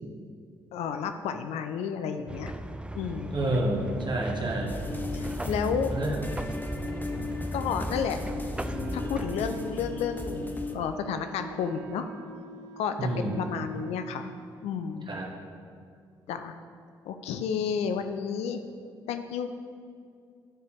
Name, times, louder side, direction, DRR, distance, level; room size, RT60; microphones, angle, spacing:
voice 1, 0.7-2.5 2.9-3.4 5.1-5.9 7.5-8.2 8.9-10.5 10.7-12.1 12.8-14.3 14.6-15.1 16.3-16.5 17.1-18.6 19.1-19.5, left 7 dB, 70° left, 8 dB, 0.5 m, -31 dB
sound 1, 2.3-9.4, right 1 dB, 10° right, 0.4 m, -38 dB
voice 2, 3.3-4.7 5.9-6.2 13.0-13.4 15.1-15.3, right 1 dB, 45° right, 0 dB, 1.5 m, -29 dB
sound 2, 4.7-10.7, left 2 dB, 15° left, 0.8 m, -35 dB
Wind instrument woodwind instrument, 8.7-14.6, right 6 dB, 90° right, 0.4 m, -45 dB
11.5 x 4.7 x 3.5 m, 2.3 s
hypercardioid pair, 45°, 11 cm